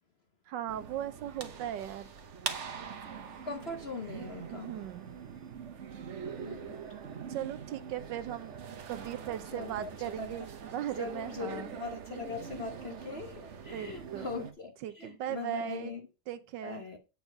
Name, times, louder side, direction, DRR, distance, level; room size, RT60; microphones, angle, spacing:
voice 1, 0.5-2.1 4.5-5.2 7.3-8.5 8.9-11.7 13.7-14.3 14.8-15.9 16.3-16.8, right 11 dB, 75° right, 1.3 m, -38 dB
sound 1, 0.7-14.5, right 7 dB, 50° right, 1.0 m, -43 dB
voice 2, 3.4-4.8 6.4-6.8 9.5-9.9 10.2-10.5 11.0-16.0 16.6-17.0, left 4 dB, 40° left, 1.0 m, -40 dB
8.8 x 4.7 x 5.2 m
omnidirectional pair, 2.0 m